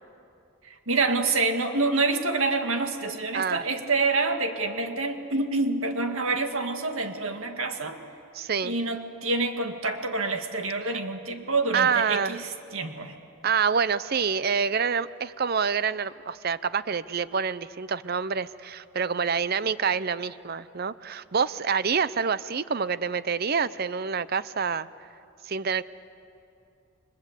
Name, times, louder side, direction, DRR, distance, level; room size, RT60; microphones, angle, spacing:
voice 1, 0.9-8.0 8.6-13.1, right 3 dB, 70° right, 5 dB, 2.1 m, -27 dB
voice 2, 8.3-8.7 10.8-11.0 11.7-12.4 13.4-24.9 25.4-25.8, right 6 dB, 45° right, 16 dB, 0.6 m, -27 dB
30.0 x 24.0 x 8.3 m, 2.7 s
head